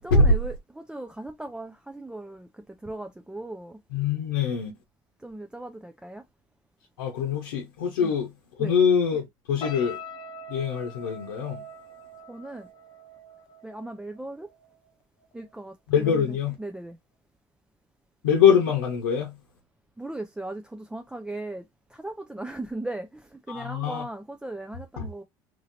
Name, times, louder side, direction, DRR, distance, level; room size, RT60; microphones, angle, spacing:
voice 1, 0.0-3.8 5.2-6.2 8.0-8.1 8.6-8.7 12.3-12.7 13.6-14.5 15.3-17.0 20.0-25.2, right 2 dB, 10° right, 0.4 m, -38 dB
voice 2, 3.9-4.7 7.0-8.3 8.6-10.0 10.5-11.6 15.9-16.5 18.2-19.4 23.5-24.1 25.0-25.1, left 6 dB, 85° left, 0.8 m, -23 dB
sound 1, 9.6-14.9 15.2-15.5, left 1 dB, 45° left, 0.6 m, -43 dB
3.0 x 2.7 x 2.6 m
hypercardioid pair, 75°, 11 cm